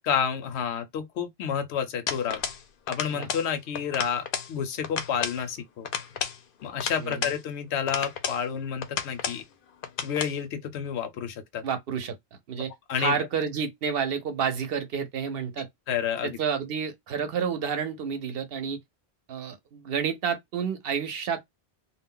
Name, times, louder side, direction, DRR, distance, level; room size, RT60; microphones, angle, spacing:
voice 1, 0.0-2.4 2.9-5.9 6.6-9.4 10.0-11.6 12.9-13.3 15.9-16.4, left 8 dB, 85° left, 0.9 m, -30 dB
sound 1, 2.1-2.6 2.9-3.5 3.8-4.5 4.8-5.4 5.8-7.4 7.9-8.4 8.8-9.4 9.8-10.4, left 7 dB, 60° left, 0.7 m, -32 dB
voice 2, 11.6-12.1 12.5-12.7 13.0-15.7 16.2-18.8 19.3-21.4, right 6 dB, 65° right, 0.8 m, -30 dB
2.3 x 2.1 x 3.6 m
omnidirectional pair, 1.1 m